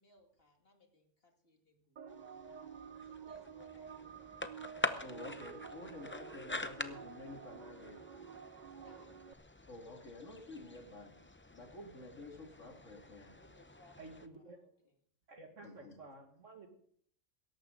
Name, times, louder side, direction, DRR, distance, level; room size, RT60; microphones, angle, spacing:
voice 1, 0.0-2.0 2.3-5.3 5.7-6.7 8.6-9.1 13.3-14.0 14.3-15.0, left 1 dB, 50° left, 3 dB, 2.5 m, -66 dB
sound 1, 2.0-9.3, right 7 dB, 45° right, 0.7 m, -51 dB
sound 2, 2.1-14.3, left 2 dB, 15° left, 0.5 m, -46 dB
voice 2, 5.0-8.0 9.7-11.1 11.5-13.4 15.6-16.0, left 2 dB, 85° left, 2 dB, 2.9 m, -50 dB
voice 3, 14.0-14.6 15.3-16.7, right 3 dB, 75° right, 4 dB, 2.4 m, -53 dB
17.5 x 14.0 x 3.9 m, 0.63 s
omnidirectional pair, 1.3 m